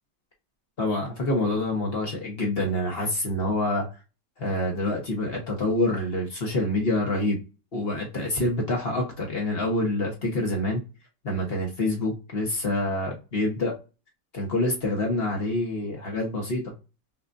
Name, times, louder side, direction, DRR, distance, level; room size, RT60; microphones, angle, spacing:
voice 1, 0.8-3.9 4.4-7.4 7.7-10.8 11.2-13.7 14.3-16.7, left 1 dB, 40° left, 1.2 m, -26 dB
5.8 x 2.6 x 2.5 m
omnidirectional pair, 1.9 m